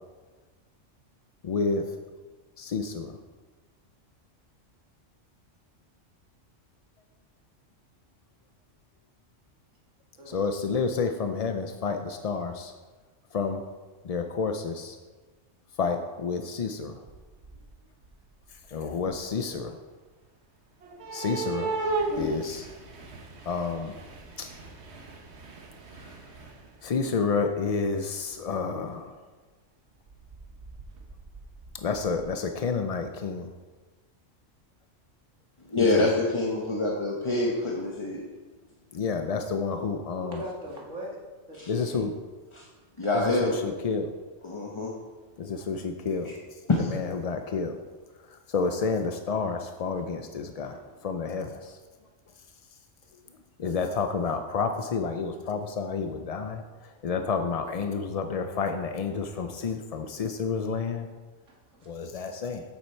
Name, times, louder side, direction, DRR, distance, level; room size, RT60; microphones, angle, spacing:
voice 1, 1.4-1.8 2.6-3.1 10.3-12.7 13.3-13.6 14.1-15.0 15.8-17.0 18.7-19.8 21.1-21.7 22.2-22.7 23.5-23.9 24.4-24.5 26.8-29.1 31.8-33.5 35.8-36.0 38.9-40.4 41.7-42.1 43.4-44.1 45.4-46.3 47.2-47.7 48.5-50.8 51.0-51.6 53.6-56.6 57.0-61.1 61.9-62.6, left 5 dB, 60° left, 6 dB, 0.4 m, -29 dB
sound 1, 17.1-17.8 18.0-19.3 20.8-27.0 28.3-28.4 28.9-29.0 30.1-32.2, right 3 dB, 60° right, 1.2 m, -36 dB
voice 2, 35.7-38.2 41.5-41.7 42.5-42.7 43.0-43.6 44.4-44.9 46.2-46.3 46.7-46.9, left 2 dB, 25° left, -2 dB, 0.9 m, -26 dB
voice 3, 40.1-41.2 41.5-42.1 43.0-43.1 50.5-51.0 61.5-61.9, equal, 85° right, -3 dB, 2.3 m, -41 dB
8.4 x 7.3 x 4.4 m, 1.3 s
omnidirectional pair, 1.3 m